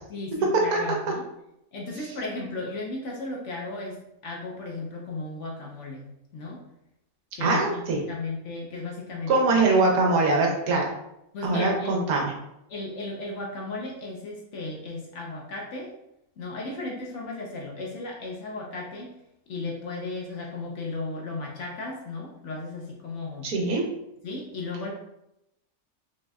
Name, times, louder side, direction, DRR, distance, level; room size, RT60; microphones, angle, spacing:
voice 1, 0.1-1.2 1.7-6.0 6.3-6.6 7.3-9.7 11.3-12.0 12.7-15.9 16.4-19.2 19.5-23.5 24.2-24.9, left 3 dB, 65° left, -2 dB, 0.8 m, -35 dB
voice 2, 7.4-8.0 9.3-10.9 11.4-12.3 23.4-23.8, right 3 dB, 80° right, 0 dB, 1.3 m, -22 dB
4.2 x 3.1 x 2.3 m, 0.86 s
omnidirectional pair, 1.6 m